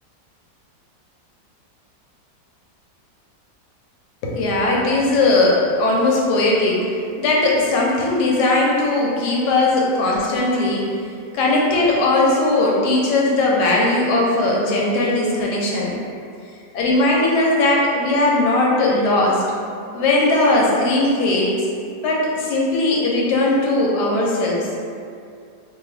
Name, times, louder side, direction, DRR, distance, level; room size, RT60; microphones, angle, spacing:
voice 1, 4.2-11.0 11.3-16.0 16.7-19.4 19.9-21.5 22.0-24.7, left 2 dB, 75° left, -3 dB, 1.1 m, -18 dB
2.7 x 2.5 x 3.1 m, 2.3 s
omnidirectional pair, 2.0 m